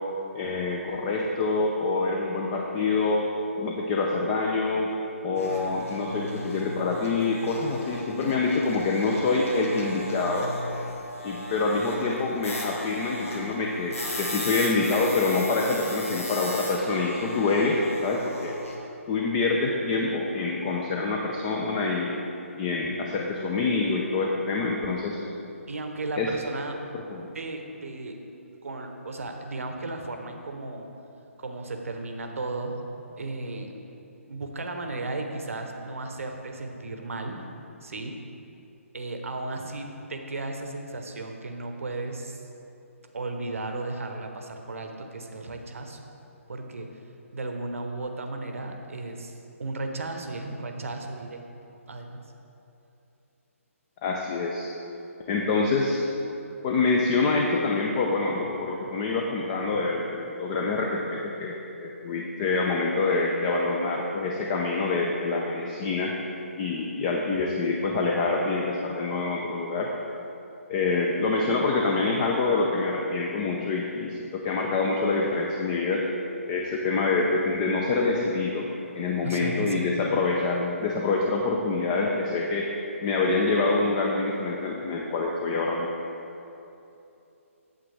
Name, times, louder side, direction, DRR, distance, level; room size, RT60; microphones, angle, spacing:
voice 1, 0.3-3.3 3.5-4.9 5.2-10.5 11.2-18.5 19.1-22.1 22.6-25.2 26.2-26.3 26.9-27.3 54.0-54.7 55.3-56.0 56.6-66.1 66.6-69.9 70.7-76.1 76.5-78.7 78.9-82.7 83.0-85.9, left 3 dB, 25° left, 0 dB, 0.6 m, -26 dB
sound 1, 5.3-18.8, left 1 dB, 70° left, 1.7 m, -37 dB
voice 2, 25.7-26.8 27.3-28.2 28.6-30.9 31.4-32.8 33.2-33.8 34.2-37.4 37.8-38.1 38.9-42.6 43.1-46.0 46.5-46.9 47.3-51.4 51.9-52.3 59.7-59.8 79.2-80.1, right 2 dB, 70° right, 4 dB, 0.8 m, -35 dB
9.1 x 7.7 x 3.3 m, 2.9 s
figure-of-eight pair, 140°, 8 cm